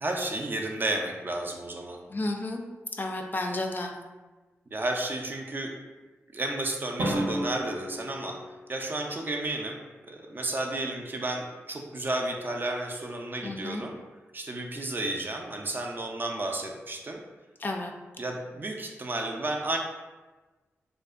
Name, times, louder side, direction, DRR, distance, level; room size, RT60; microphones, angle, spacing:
voice 1, 0.0-2.0 4.7-5.7 6.3-8.4 8.7-9.8 10.1-13.9 14.3-17.2 18.2-19.8, right 2 dB, 40° right, 2 dB, 0.4 m, -32 dB
voice 2, 2.1-2.6 3.0-3.9 13.4-13.8 17.6-17.9, left 2 dB, 40° left, 3 dB, 0.3 m, -32 dB
Drum, 7.0-9.0, right 1 dB, 80° right, 0.6 m, -32 dB
2.5 x 2.1 x 2.3 m, 1.2 s
cardioid pair, 50°, 5 cm